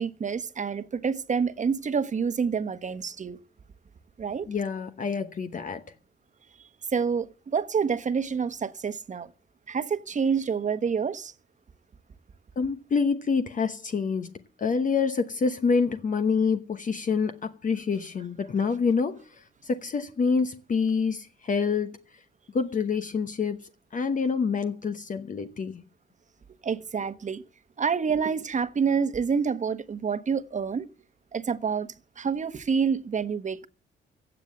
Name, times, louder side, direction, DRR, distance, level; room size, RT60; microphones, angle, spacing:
voice 1, 0.0-3.4 4.2-4.5 6.9-9.3 9.7-11.3 26.6-27.4 27.8-30.9 31.3-33.7, right 6 dB, 40° right, 1.2 m, -28 dB
voice 2, 4.5-5.8 12.6-14.3 14.6-22.0 22.5-23.6 23.9-25.8, left 5 dB, 40° left, 1.0 m, -27 dB
16.0 x 7.4 x 7.6 m
cardioid pair, 90°, 20 cm